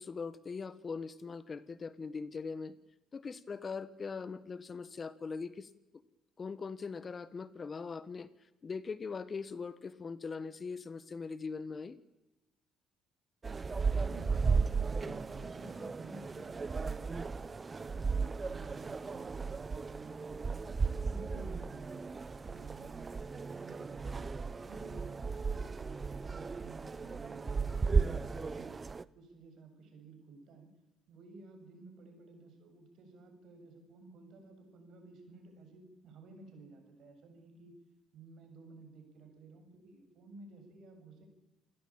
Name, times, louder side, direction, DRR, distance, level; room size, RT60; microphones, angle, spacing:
voice 1, 0.0-2.7 3.1-5.7 6.4-8.3 8.6-12.0, left 5 dB, 35° left, 15 dB, 1.4 m, -41 dB
sound 1, 13.4-29.0, right 4 dB, 30° right, 0.9 m, -35 dB
voice 2, 13.9-17.3 17.7-20.8 21.0-28.8 29.1-30.7 31.1-37.7 38.1-41.3, right 3 dB, 65° right, 5 dB, 7.4 m, -54 dB
28.0 x 16.0 x 8.8 m, 1.0 s
supercardioid pair, 80°, 0 cm